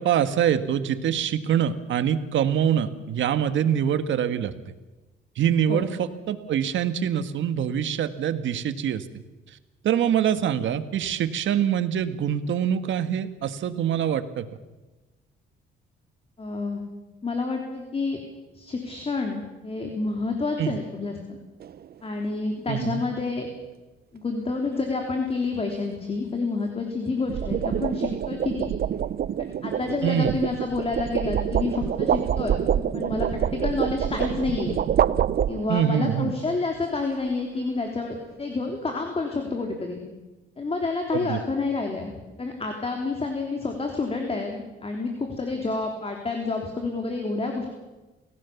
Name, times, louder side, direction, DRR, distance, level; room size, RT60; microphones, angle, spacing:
voice 1, 0.0-4.5 5.4-9.0 9.8-14.5 20.6-20.8 22.7-23.0 30.0-30.4 35.7-36.4 41.1-41.4, right 9 dB, 70° right, 11 dB, 1.7 m, -24 dB
voice 2, 16.4-16.8 17.2-18.2 18.5-21.4 22.0-23.5 24.1-28.7 29.6-34.8 35.5-40.0 40.6-47.7, left 3 dB, 30° left, 3 dB, 3.5 m, -29 dB
sound 1, 21.6-21.9 27.1-36.0, right 9 dB, 50° right, 0.7 m, -26 dB
29.0 x 17.0 x 7.2 m, 1.1 s
cardioid pair, 90°, 20 cm